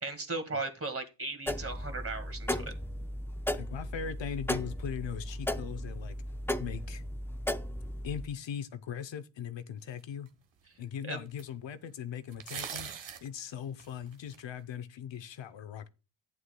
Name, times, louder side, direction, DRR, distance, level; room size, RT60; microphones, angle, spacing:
voice 1, 0.0-2.7 11.0-11.2, right 3 dB, 30° right, 1.9 m, -37 dB
sound 1, 1.5-8.3, left 1 dB, 5° left, 0.4 m, -36 dB
voice 2, 3.5-6.2 6.6-7.0 8.0-10.3 10.8-15.9, left 8 dB, 75° left, 0.8 m, -39 dB
sound 2, 10.3-10.4 11.4-11.5 12.3-13.3 13.8-14.4, right 8 dB, 75° right, 1.3 m, -40 dB
11.5 x 9.5 x 2.2 m
cardioid pair, 95°, 45 cm